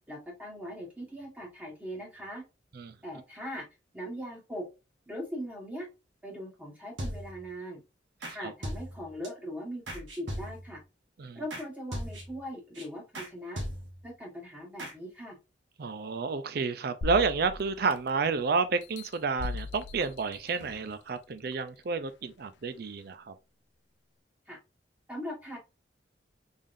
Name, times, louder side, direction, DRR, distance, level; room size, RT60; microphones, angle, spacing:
voice 1, 0.1-2.4 3.0-3.6 3.9-4.6 5.1-5.9 6.2-7.8 8.3-10.8 11.3-13.6 14.0-15.4 24.5-24.6 25.1-25.6, equal, 10° right, 1.3 m, -40 dB
sound 1, 7.0-7.5 8.2-8.4 8.6-9.3 9.9-10.8 11.5-11.7 11.9-12.4 12.8-12.9 13.1-13.3 13.6-14.1 14.8-14.9, equal, 90° right, 1.3 m, -38 dB
voice 2, 15.8-23.3, right 4 dB, 55° right, 0.5 m, -30 dB
sound 2, 17.0-18.3 18.8-20.9 21.5-21.6, left 4 dB, 70° left, 0.4 m, -39 dB
3.6 x 3.5 x 2.6 m
head